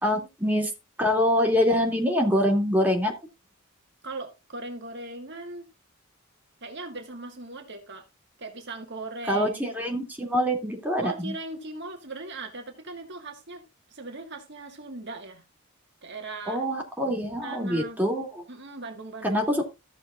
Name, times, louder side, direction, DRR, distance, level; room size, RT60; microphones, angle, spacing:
voice 1, 0.0-0.7 1.0-3.1 9.3-11.3 16.5-18.4 19.2-19.6, equal, 10° right, 2.6 m, -25 dB
voice 2, 4.0-5.6 6.6-8.0 8.4-9.6 11.0-13.6 13.9-15.4 16.0-16.6 17.4-18.0 18.5-19.6, right 2 dB, 60° right, 1.7 m, -39 dB
14.5 x 6.9 x 2.5 m
head